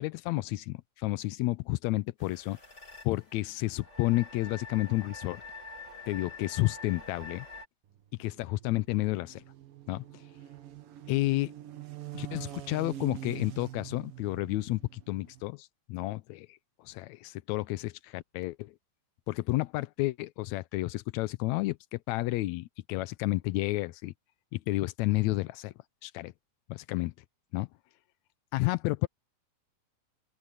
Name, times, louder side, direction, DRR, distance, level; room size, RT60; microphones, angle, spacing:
voice 1, 0.0-2.6 3.0-5.4 6.1-7.5 8.2-9.4 9.9-10.0 11.1-11.5 12.1-18.7 19.3-24.1 24.5-25.7 26.0-26.3 26.9-27.1 27.5-27.7 28.5-29.1, left 19 dB, 85° left, 1.6 m, -31 dB
sound 1, 2.2-7.7, left 3 dB, 20° left, 7.8 m, -46 dB
sound 2, 7.9-15.5, right 13 dB, 90° right, 3.5 m, -45 dB
open air
omnidirectional pair, 3.8 m